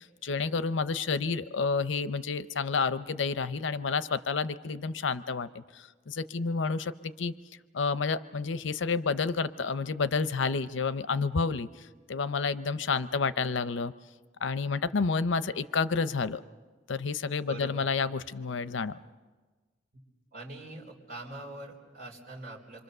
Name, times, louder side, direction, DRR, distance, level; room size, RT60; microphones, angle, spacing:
voice 1, 0.0-7.3 7.7-13.9 14.4-16.4 16.9-19.0, left 4 dB, 85° left, 14 dB, 0.6 m, -30 dB
voice 2, 17.5-17.8 20.3-22.8, right 2 dB, 50° right, -3 dB, 4.3 m, -43 dB
26.5 x 24.5 x 6.7 m, 1.4 s
head